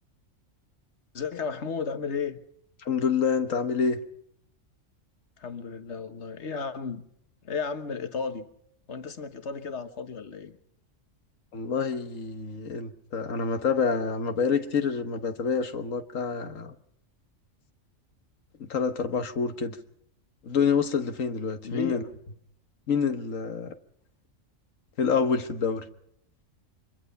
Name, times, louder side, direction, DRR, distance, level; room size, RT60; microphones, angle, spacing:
voice 1, 1.1-2.4 5.4-7.1 7.4-8.5 8.9-10.6 21.6-22.1, left 5 dB, 60° left, 10 dB, 1.6 m, -34 dB
voice 2, 2.8-4.0 11.5-16.7 18.6-19.8 20.4-22.0 22.9-23.7 25.0-25.8, left 6 dB, 80° left, 8 dB, 1.6 m, -27 dB
24.5 x 22.0 x 5.6 m, 0.72 s
omnidirectional pair, 1.3 m